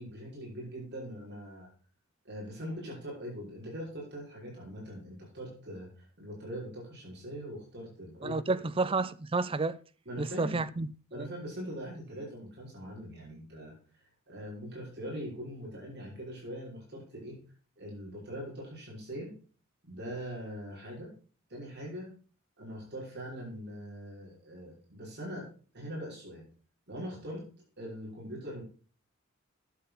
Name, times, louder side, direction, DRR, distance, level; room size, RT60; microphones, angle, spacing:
voice 1, 0.0-1.7 2.2-8.4 10.1-10.6 11.1-13.7 14.3-17.4 17.8-19.3 19.8-21.1 21.5-22.1 22.6-25.5 25.7-26.4 26.9-27.4 27.8-28.6, equal, 55° right, 5.3 m, -42 dB
voice 2, 8.2-9.8 10.2-11.3, right 3 dB, 25° right, 0.5 m, -31 dB
11.5 x 7.7 x 4.0 m
head